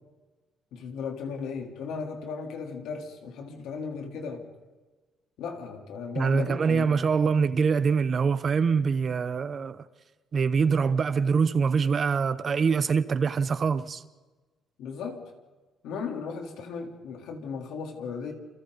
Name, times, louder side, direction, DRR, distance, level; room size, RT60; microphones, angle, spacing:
voice 1, 0.7-4.5 5.4-6.9 7.2-7.3 14.8-15.2 15.8-18.3, left 5 dB, 80° left, 3.7 m, -36 dB
voice 2, 6.2-9.8 10.3-14.0, right 5 dB, 35° right, 0.9 m, -24 dB
29.5 x 28.5 x 4.1 m
cardioid pair, 155°, 0 cm